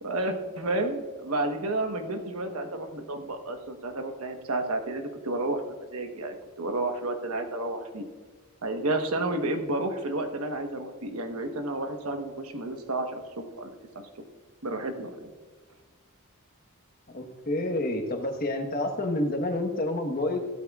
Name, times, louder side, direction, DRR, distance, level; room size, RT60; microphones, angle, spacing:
voice 1, 0.0-8.0 8.6-13.7 14.6-15.3, right 2 dB, 80° right, 5 dB, 1.2 m, -31 dB
voice 2, 17.1-20.4, left 1 dB, 45° left, 4 dB, 1.2 m, -28 dB
15.5 x 12.0 x 2.4 m, 1.4 s
head